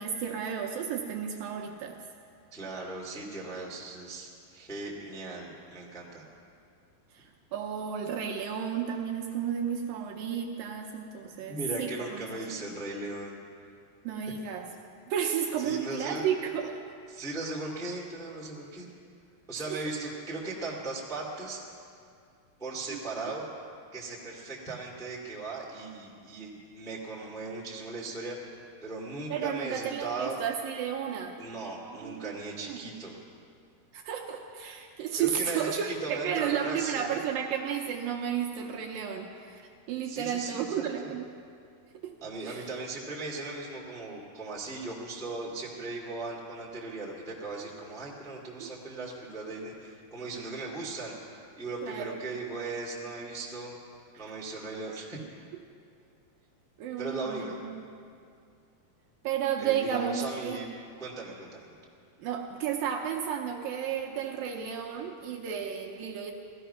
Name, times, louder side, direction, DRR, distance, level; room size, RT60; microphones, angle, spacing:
voice 1, 0.0-2.0 7.1-12.2 12.6-12.7 14.0-14.7 15.1-16.8 19.7-19.8 22.9-23.0 29.3-31.4 31.8-32.3 32.6-32.8 33.9-41.3 42.0-42.1 42.4-42.7 48.6-48.7 51.8-52.2 56.8-57.9 59.2-60.6 62.2-66.3, right 8 dB, 75° right, 2 dB, 2.3 m, -33 dB
voice 2, 2.5-6.3 11.5-13.4 14.3-14.4 15.6-16.3 17.1-18.9 19.5-21.6 22.6-23.5 23.9-28.4 28.8-30.4 31.4-33.1 35.2-37.2 40.0-41.1 42.2-53.7 54.1-55.2 57.0-57.5 59.6-60.7 61.0-61.7, right 3 dB, ahead, -3 dB, 1.0 m, -38 dB
15.5 x 14.5 x 5.6 m, 2.4 s
omnidirectional pair, 4.6 m